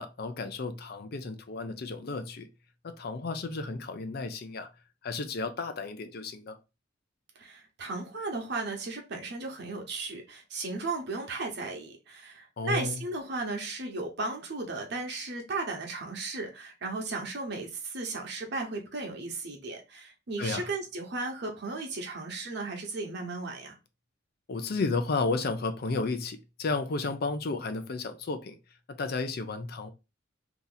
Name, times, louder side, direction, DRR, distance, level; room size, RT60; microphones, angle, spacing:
voice 1, 0.0-2.5 2.8-4.7 5.0-6.6 12.6-13.0 20.4-20.7 24.5-28.6 29.0-29.9, left 3 dB, 55° left, 0.5 m, -32 dB
voice 2, 7.4-23.8, right 3 dB, 60° right, 1.0 m, -35 dB
2.9 x 2.6 x 3.8 m
head